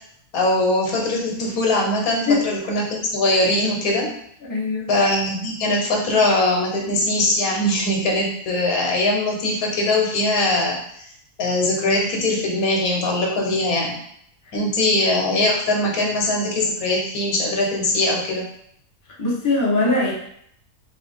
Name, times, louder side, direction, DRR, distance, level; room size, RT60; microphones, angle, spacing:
voice 1, 0.3-4.1 4.9-10.8 11.4-14.0 14.5-18.4, left 2 dB, 70° left, 0 dB, 1.3 m, -21 dB
voice 2, 4.5-4.9 19.2-20.1, left 3 dB, 20° left, -5 dB, 0.5 m, -20 dB
2.9 x 2.9 x 3.4 m, 0.68 s
omnidirectional pair, 1.7 m